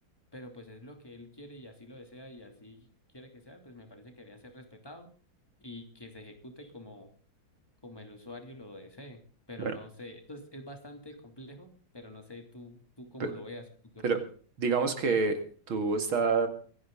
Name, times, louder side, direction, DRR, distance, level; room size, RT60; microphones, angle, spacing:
voice 1, 0.3-2.9 3.1-5.1 5.6-7.1 7.8-9.2 9.5-13.7 13.9-14.2, left 1 dB, 10° left, 4 dB, 2.8 m, -47 dB
voice 2, 14.6-15.4 15.7-16.5, right 4 dB, 85° right, 7 dB, 3.0 m, -27 dB
24.5 x 10.5 x 3.9 m, 0.42 s
omnidirectional pair, 2.2 m